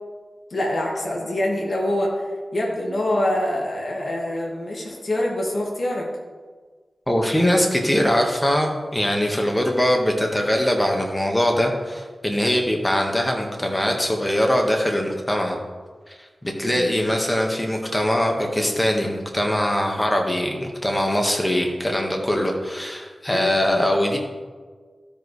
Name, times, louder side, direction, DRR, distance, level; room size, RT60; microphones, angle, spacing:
voice 1, 0.5-6.1 16.6-16.9 23.3-23.5, left 1 dB, 60° left, -2 dB, 1.9 m, -25 dB
voice 2, 7.1-15.6 16.1-16.2 16.4-24.2, equal, 15° left, 1 dB, 1.5 m, -22 dB
15.0 x 5.2 x 3.2 m, 1.5 s
cardioid pair, 45°, 0 cm